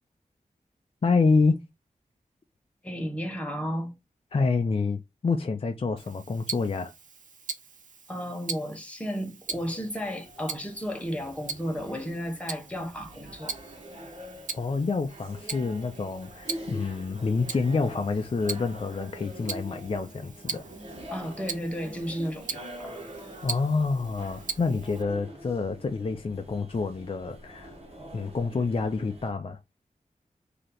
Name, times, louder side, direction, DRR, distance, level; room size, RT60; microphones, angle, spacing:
voice 1, 1.0-1.7 4.3-6.9 14.5-20.6 23.4-27.7 28.1-29.6, left 4 dB, 45° left, 0.5 m, -27 dB
voice 2, 2.8-3.9 8.1-13.6 21.1-23.0, equal, 10° left, 1.3 m, -33 dB
Tick-tock, 6.0-25.0, right 5 dB, 65° right, 0.6 m, -41 dB
sound 1, 9.5-29.3, equal, 45° right, 1.5 m, -45 dB
3.2 x 2.8 x 3.9 m
wide cardioid pair, 85°, 14 cm